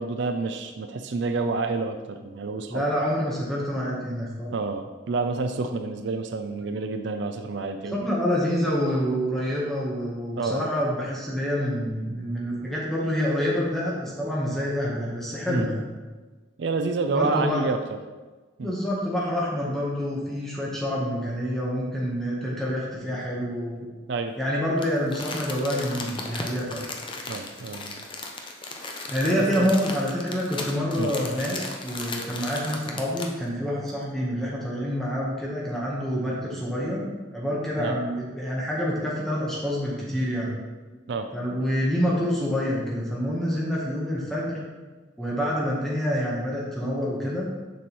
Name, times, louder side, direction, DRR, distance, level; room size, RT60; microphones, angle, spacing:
voice 1, 0.0-2.8 4.5-8.0 10.4-10.6 15.5-15.7 16.6-17.8 18.6-18.7 24.1-24.3 27.3-28.0 29.4-29.7 31.0-31.1 37.8-38.0 41.1-41.3, right 3 dB, 60° right, 7 dB, 0.4 m, -28 dB
voice 2, 2.7-4.5 7.9-15.9 17.1-17.6 18.6-23.9 24.4-26.8 29.1-37.1 37.3-40.5 41.3-44.6 45.2-47.5, equal, ahead, -6 dB, 1.0 m, -27 dB
Crumpling crinkling, 24.8-33.4 33.9-34.0, left 3 dB, 25° left, 0.6 m, -36 dB
6.9 x 6.1 x 3.0 m, 1.3 s
head